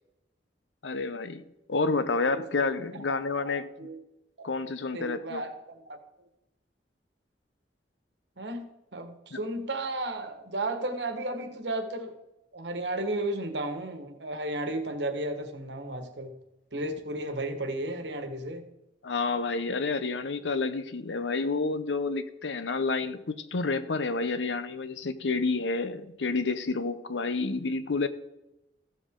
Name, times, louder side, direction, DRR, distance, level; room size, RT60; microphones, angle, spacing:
voice 1, 0.8-3.7 4.4-5.4 9.3-9.4 19.0-28.1, left 3 dB, 80° left, 12 dB, 0.8 m, -29 dB
voice 2, 3.3-4.0 4.4-4.5 4.9-5.5 5.8-6.0 8.4-12.2 12.5-16.4 16.7-18.6, right 1 dB, 70° right, 7 dB, 1.4 m, -34 dB
14.5 x 7.7 x 3.7 m, 0.91 s
head